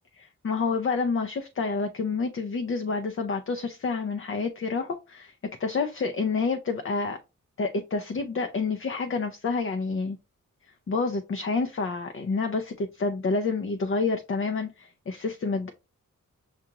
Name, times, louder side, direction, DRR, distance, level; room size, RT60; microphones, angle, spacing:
voice 1, 0.2-5.3 5.6-7.2 7.6-10.2 10.9-15.7, left 4 dB, 40° left, 0.5 m, -28 dB
5.9 x 2.4 x 2.8 m
wide cardioid pair, 80°, 32 cm